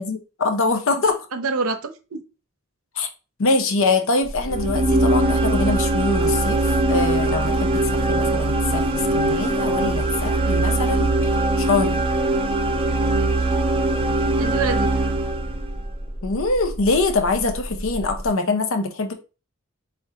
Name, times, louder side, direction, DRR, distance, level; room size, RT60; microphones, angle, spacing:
voice 1, 0.0-1.3 3.0-3.1 3.4-8.8 9.1-11.2 11.6-12.0 16.2-19.1, left 3 dB, 65° left, 0.6 m, -23 dB
voice 2, 1.3-2.2 13.2-13.3 14.4-14.9, right 4 dB, 85° right, 0.7 m, -26 dB
sound 1, 4.2-18.3, right 1 dB, 15° left, 0.8 m, -33 dB
sound 2, 4.5-15.8, right 2 dB, 25° right, 0.5 m, -21 dB
4.8 x 3.4 x 2.7 m
head